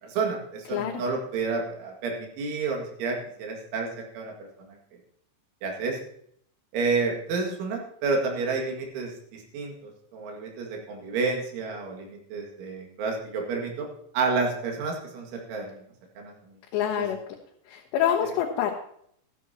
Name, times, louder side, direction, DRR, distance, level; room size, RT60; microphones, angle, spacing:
voice 1, 0.0-3.9 4.1-4.8 5.6-6.0 6.7-9.7 10.1-13.9 14.1-15.8 16.2-16.3 17.0-17.1 18.2-18.3, right 4 dB, 85° right, 0 dB, 4.5 m, -30 dB
voice 2, 0.7-1.0 16.7-17.2 17.7-18.7, left 10 dB, 75° left, 0 dB, 3.1 m, -26 dB
13.5 x 13.5 x 2.8 m, 0.67 s
omnidirectional pair, 5.3 m